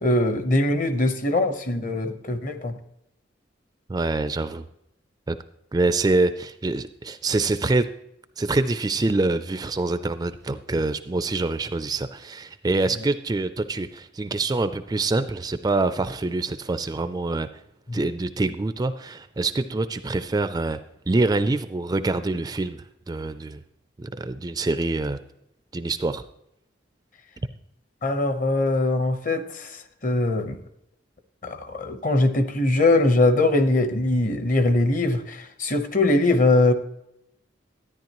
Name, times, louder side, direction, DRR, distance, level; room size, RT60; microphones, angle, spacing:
voice 1, 0.0-2.8 17.9-18.0 28.0-29.7 30.0-30.6 31.4-36.7, left 2 dB, 45° left, 9 dB, 0.9 m, -21 dB
voice 2, 3.9-4.6 5.3-5.4 5.7-7.9 8.4-17.5 17.9-20.8 21.1-23.6 24.0-25.2 25.7-26.2, right 2 dB, 20° right, 12 dB, 0.3 m, -25 dB
13.0 x 9.8 x 3.0 m, 0.81 s
head